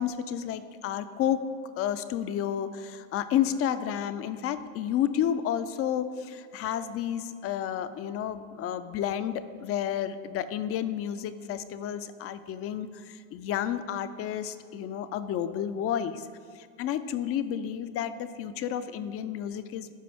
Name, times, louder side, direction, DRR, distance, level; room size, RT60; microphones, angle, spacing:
voice 1, 0.0-1.4 1.8-16.3 16.5-19.9, left 10 dB, 35° left, 12 dB, 0.4 m, -31 dB
13.0 x 5.2 x 3.5 m, 2.2 s
supercardioid pair, 110°, 41 cm